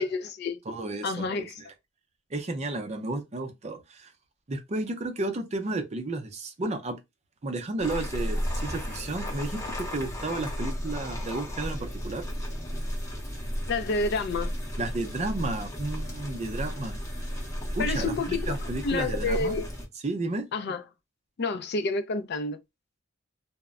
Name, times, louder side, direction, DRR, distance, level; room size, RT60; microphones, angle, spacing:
voice 1, 0.0-0.6 1.0-1.5 13.7-14.5 17.8-18.5 18.8-19.7 20.5-20.8 21.4-22.6, left 3 dB, 55° left, 0.4 m, -29 dB
voice 2, 0.7-1.5 2.3-4.1 4.5-7.0 7.4-12.3 14.8-17.0 17.7-19.6 20.0-20.4, right 2 dB, 35° right, 0.5 m, -32 dB
sound 1, 7.8-19.9, equal, 15° left, 0.7 m, -34 dB
2.1 x 2.0 x 3.5 m
head